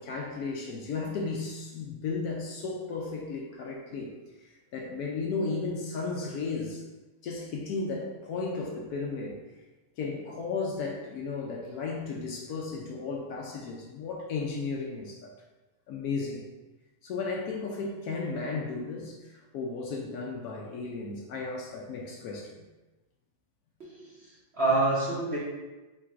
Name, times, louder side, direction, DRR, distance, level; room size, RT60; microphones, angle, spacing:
voice 1, 0.0-4.1 4.4-6.8 7.2-9.4 10.0-15.3 15.9-16.4 17.0-22.7, left 4 dB, 70° left, -1 dB, 1.0 m, -34 dB
voice 2, 23.8-25.4, right 2 dB, 50° right, -7 dB, 0.8 m, -28 dB
3.9 x 2.5 x 4.4 m, 1.2 s
omnidirectional pair, 1.9 m